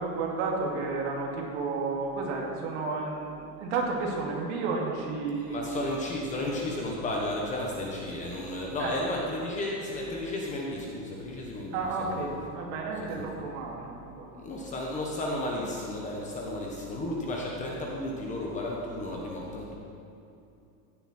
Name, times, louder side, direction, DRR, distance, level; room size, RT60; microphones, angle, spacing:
voice 1, 0.0-5.7 8.8-8.9 11.7-14.4, right 4 dB, 50° right, -1 dB, 2.6 m, -32 dB
voice 2, 5.5-12.3 13.1-13.5 14.4-19.8, left 1 dB, 15° left, -2 dB, 1.1 m, -33 dB
16.0 x 10.0 x 4.4 m, 2.7 s
supercardioid pair, 175°, 45 cm